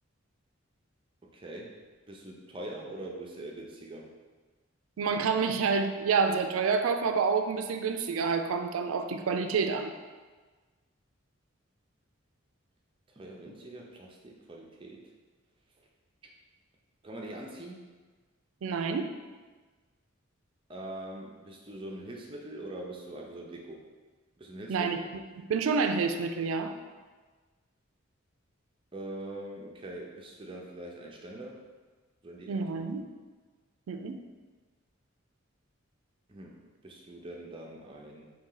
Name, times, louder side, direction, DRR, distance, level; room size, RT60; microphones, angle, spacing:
voice 1, 1.2-1.8 2.1-4.1 13.1-15.1 17.0-17.9 20.7-23.8 24.4-24.9 28.9-31.6 32.2-32.7 36.3-38.3, right 1 dB, 25° right, -1 dB, 0.5 m, -43 dB
voice 2, 5.0-9.9 18.6-19.1 24.7-25.0 25.4-26.7 32.5-33.0 33.9-34.2, right 5 dB, 80° right, 6 dB, 0.4 m, -28 dB
4.1 x 2.7 x 3.8 m, 1.4 s
head